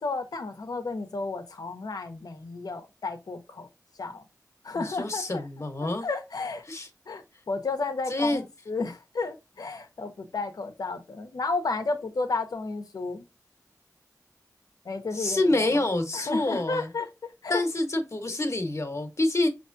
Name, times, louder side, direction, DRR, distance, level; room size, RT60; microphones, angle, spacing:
voice 1, 0.0-3.7 4.0-4.2 4.6-5.4 5.8-6.6 7.1-13.3 14.8-15.9 16.1-17.1 17.4-17.6, left 3 dB, 80° left, 0.8 m, -32 dB
voice 2, 4.7-6.1 6.7-6.9 8.1-8.4 15.1-16.9 17.5-19.5, left 2 dB, 50° left, 1.1 m, -27 dB
5.5 x 3.0 x 2.6 m
cardioid pair, 50°, 6 cm